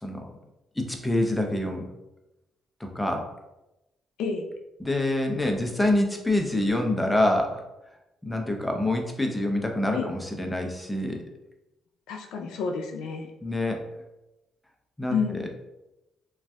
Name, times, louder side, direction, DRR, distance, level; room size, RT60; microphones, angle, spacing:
voice 1, 0.8-1.9 2.8-3.3 4.8-7.6 8.2-11.2 13.4-13.8 15.0-15.5, left 1 dB, 10° left, 3 dB, 0.5 m, -26 dB
voice 2, 12.1-13.3 15.1-15.5, left 5 dB, 90° left, 2 dB, 0.4 m, -30 dB
2.5 x 2.3 x 3.2 m, 0.95 s
cardioid pair, 90°, 0 cm